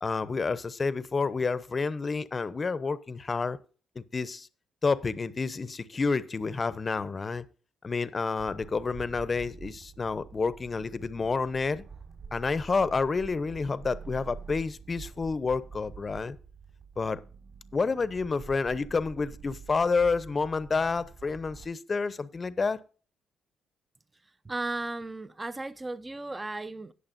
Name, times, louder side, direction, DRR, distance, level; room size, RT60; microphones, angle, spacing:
voice 1, 0.0-3.6 4.0-4.5 4.8-7.4 7.8-11.8 12.3-16.4 17.0-17.2 17.7-22.8, left 4 dB, 35° left, 0.8 m, -29 dB
sound 1, 8.4-21.7, right 5 dB, 55° right, 5.5 m, -47 dB
voice 2, 24.4-26.9, right 2 dB, 20° right, 0.6 m, -35 dB
18.0 x 6.7 x 2.6 m
cardioid pair, 90°, 0 cm